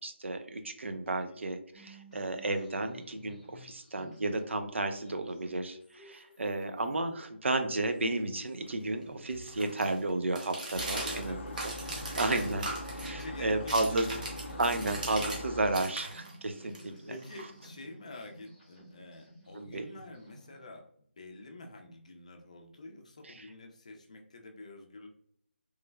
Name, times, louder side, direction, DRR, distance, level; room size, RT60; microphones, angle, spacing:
voice 1, 0.0-11.3 11.6-11.7 12.1-12.7 13.0-14.1 14.6-17.1 19.6-19.9 23.2-23.5, right 2 dB, 70° right, 7 dB, 0.6 m, -32 dB
sound 1, 1.7-20.6, equal, ahead, 1.0 m, -56 dB
sound 2, 8.1-15.4 15.7-17.9, right 2 dB, 40° right, 0.9 m, -40 dB
sound 3, 10.7-15.7, left 1 dB, 85° left, 0.6 m, -42 dB
voice 2, 10.9-12.2 13.0-14.6 17.1-20.9 21.2-25.1, left 2 dB, 35° left, 3 dB, 0.5 m, -48 dB
3.3 x 3.1 x 2.2 m, 0.66 s
figure-of-eight pair, 175°, 7 cm